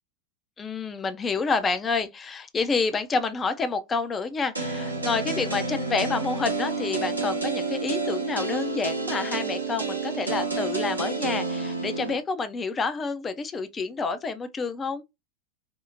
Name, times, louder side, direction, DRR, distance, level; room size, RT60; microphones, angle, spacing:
voice 1, 0.6-15.0, left 4 dB, 20° left, 0.4 m, -28 dB
sound 1, 4.5-12.2, right 3 dB, 85° right, 0.8 m, -29 dB
4.3 x 2.0 x 2.5 m
figure-of-eight pair, 90°, 0 cm